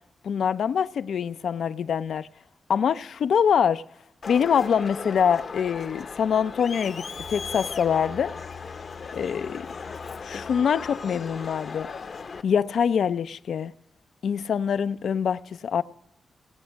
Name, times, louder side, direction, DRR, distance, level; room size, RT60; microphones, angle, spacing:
voice 1, 0.2-2.3 2.7-3.8 4.3-8.3 9.1-9.7 10.2-11.9 12.4-13.7 14.2-15.8, left 7 dB, 80° left, 0.4 m, -24 dB
Crowd, 4.2-12.4, left 5 dB, 55° left, 0.8 m, -37 dB
18.0 x 7.9 x 6.2 m
cardioid pair, 85°, 0 cm